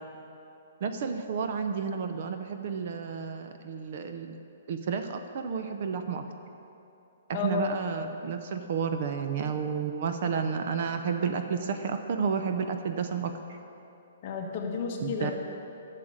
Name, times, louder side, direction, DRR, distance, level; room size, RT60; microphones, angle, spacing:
voice 1, 0.8-4.4 4.7-6.2 7.4-13.3 15.0-15.3, right 6 dB, 40° right, 7 dB, 0.6 m, -31 dB
voice 2, 7.3-7.6 14.2-15.3, left 5 dB, 30° left, 0 dB, 1.4 m, -31 dB
11.0 x 6.7 x 8.8 m, 2.9 s
hypercardioid pair, 175°, 0 cm